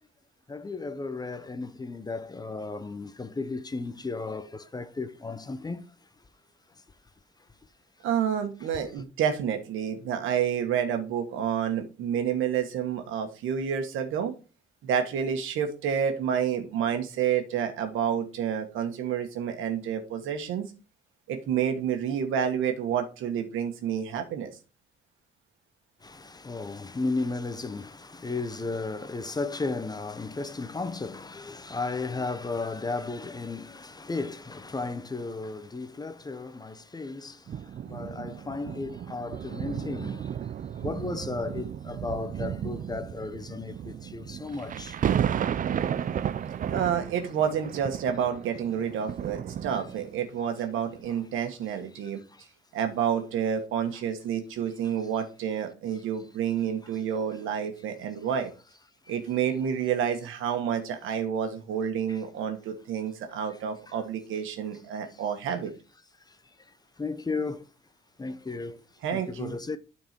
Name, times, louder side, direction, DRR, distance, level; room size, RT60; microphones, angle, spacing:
voice 1, 0.5-6.1 8.7-8.9 26.0-40.4 40.7-45.2 46.6-46.7 49.7-49.8 51.9-52.0 52.3-52.5 54.8-54.9 56.8-57.0 62.1-62.2 63.3-63.6 63.9-64.0 65.1-65.2 66.2-67.7 68.2-68.8 69.1-69.8, left 3 dB, 20° left, 0.7 m, -35 dB
voice 2, 8.0-14.3 14.8-20.6 21.3-24.5 46.7-52.2 52.7-58.5 59.1-65.7 69.0-69.6, right 8 dB, 85° right, 1.5 m, -29 dB
sound 1, 37.5-50.3 50.9-51.1, right 9 dB, 45° right, 0.4 m, -33 dB
9.2 x 4.5 x 4.3 m
cardioid pair, 90°, 20 cm